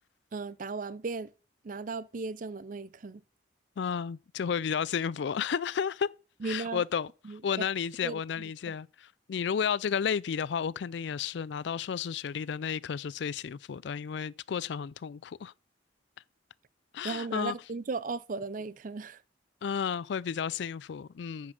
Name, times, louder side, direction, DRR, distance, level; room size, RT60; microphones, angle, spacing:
voice 1, 0.3-1.3 1.6-3.2 6.4-6.8 7.2-7.7 8.0-8.2 17.0-19.2, right 4 dB, 45° right, 0.5 m, -36 dB
voice 2, 3.8-6.1 6.4-15.5 16.9-17.6 19.6-21.5, left 7 dB, 65° left, 0.4 m, -32 dB
9.6 x 6.1 x 6.1 m
head